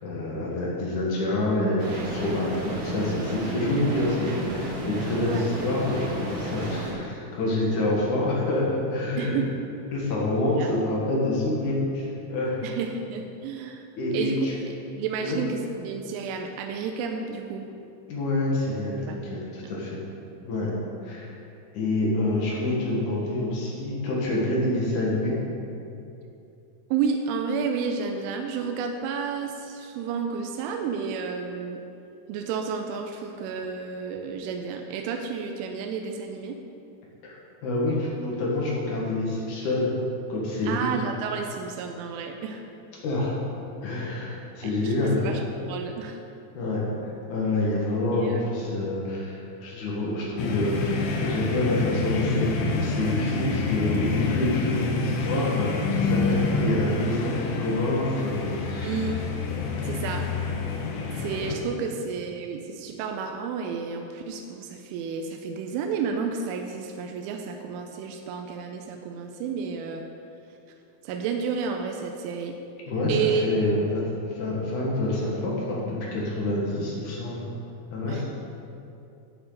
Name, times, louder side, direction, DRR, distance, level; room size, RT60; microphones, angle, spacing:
voice 1, 0.0-9.4 9.9-12.6 14.0-14.5 15.2-15.4 18.1-20.0 20.4-20.7 21.0-21.4 21.7-25.4 37.2-37.4 37.6-39.9 40.3-40.9 43.0-43.4 43.8-45.3 46.5-59.1 72.9-77.5 77.9-78.2, left 2 dB, 60° left, -5 dB, 2.2 m, -27 dB
sound 1, 1.8-6.9, right 1 dB, 65° right, 4.2 m, -32 dB
voice 2, 9.2-9.5 10.6-10.8 12.6-17.7 19.1-19.2 19.6-19.7 26.9-31.8 32.3-36.6 40.6-42.6 44.6-44.9 45.2-45.4 45.7-46.2 48.1-48.4 58.8-59.2 59.8-60.3 61.1-70.0 71.0-72.6 73.1-73.5 78.1-78.2, right 6 dB, 85° right, 3 dB, 3.1 m, -31 dB
sound 2, 50.4-61.6, left 3 dB, 85° left, 3.4 m, -27 dB
12.5 x 7.7 x 4.0 m, 2.7 s
omnidirectional pair, 5.5 m